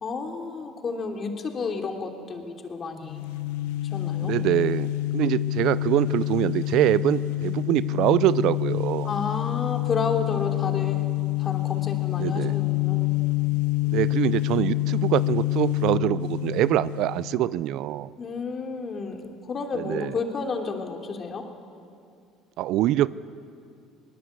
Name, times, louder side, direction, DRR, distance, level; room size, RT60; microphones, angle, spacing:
voice 1, 0.0-3.2 3.8-4.3 9.0-11.0 11.4-13.1 18.2-21.5, left 4 dB, 40° left, 3 dB, 3.0 m, -31 dB
sound 1, 3.0-17.6, left 17 dB, 85° left, 0.7 m, -27 dB
voice 2, 4.2-9.1 12.2-12.6 13.9-18.1 19.7-20.1 22.6-23.1, right 14 dB, 70° right, 18 dB, 0.5 m, -24 dB
22.0 x 19.5 x 8.2 m, 2.4 s
supercardioid pair, 90°, 0 cm